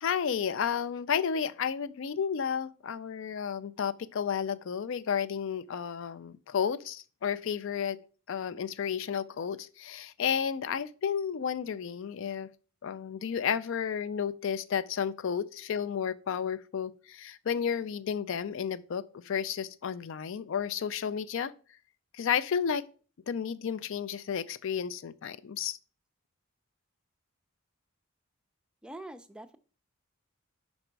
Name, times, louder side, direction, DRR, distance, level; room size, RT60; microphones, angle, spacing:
voice 1, 0.0-8.0 8.3-12.5 12.8-21.5 22.1-22.8 23.3-25.8, left 7 dB, 60° left, 0.4 m, -32 dB
voice 2, 28.8-29.6, right 1 dB, 5° right, 0.4 m, -44 dB
5.3 x 4.9 x 4.6 m
head